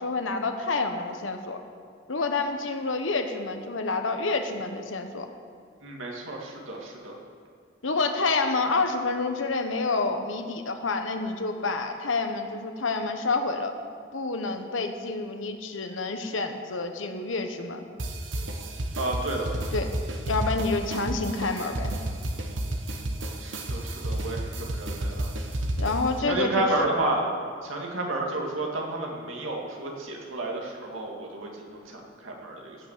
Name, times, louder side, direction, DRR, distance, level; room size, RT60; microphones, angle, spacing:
voice 1, 0.0-1.6 2.1-5.3 7.8-13.7 14.1-17.8 19.7-19.9 20.3-21.9 25.8-26.7, left 3 dB, 80° left, 6 dB, 1.1 m, -28 dB
voice 2, 5.8-7.1 19.0-19.5 23.4-25.3 26.2-27.3 27.6-32.8, right 2 dB, 90° right, -1 dB, 2.3 m, -31 dB
sound 1, 18.0-26.2, right 1 dB, 70° right, 1.1 m, -31 dB
16.0 x 6.0 x 7.4 m, 2.1 s
head